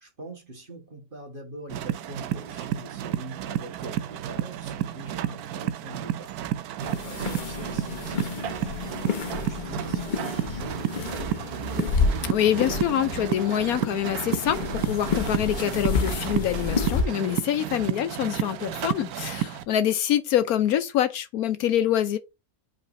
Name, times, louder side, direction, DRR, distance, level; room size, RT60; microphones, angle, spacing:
voice 1, 0.0-6.3 7.0-11.3, right 1 dB, 35° right, 2.0 m, -43 dB
sound 1, 1.7-19.6, right 11 dB, 80° right, 1.1 m, -31 dB
sound 2, 6.8-17.0, left 4 dB, 40° left, 0.8 m, -30 dB
voice 2, 12.2-22.2, left 10 dB, 70° left, 1.1 m, -25 dB
5.3 x 4.0 x 5.2 m
omnidirectional pair, 1.6 m